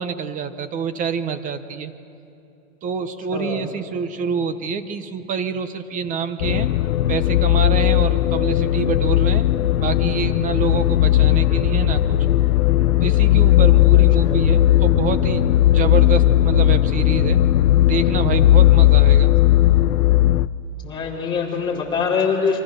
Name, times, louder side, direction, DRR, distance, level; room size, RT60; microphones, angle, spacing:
voice 1, 0.0-1.9 2.8-6.7 7.1-9.4 9.8-12.2 13.0-17.4 17.8-19.3, right 6 dB, 20° right, 11 dB, 0.9 m, -26 dB
voice 2, 3.3-3.6 13.9-14.4 20.8-22.6, left 5 dB, 10° left, -5 dB, 4.4 m, -24 dB
sound 1, 6.4-20.5, left 13 dB, 90° left, 0.7 m, -16 dB
28.5 x 24.0 x 6.8 m, 2.7 s
hypercardioid pair, 145°, 41 cm